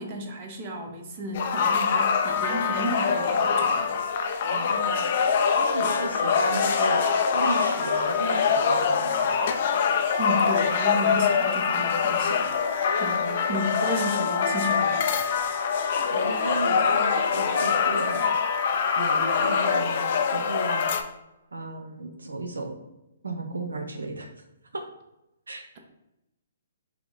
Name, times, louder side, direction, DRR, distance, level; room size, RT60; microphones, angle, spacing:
voice 1, 0.0-3.9 10.2-12.5 13.0-15.2, equal, 40° right, 2 dB, 0.9 m, -32 dB
sound 1, 1.3-21.0, left 6 dB, 50° left, 0.5 m, -24 dB
voice 2, 4.5-5.1 5.6-7.0 7.3-9.3 13.2-13.9 16.1-18.3 19.0-20.9 21.5-22.8 23.2-24.3 24.7-24.8 25.5-25.8, right 2 dB, 80° right, 4 dB, 0.6 m, -34 dB
5.7 x 2.1 x 3.8 m, 0.90 s
figure-of-eight pair, 130°, 0 cm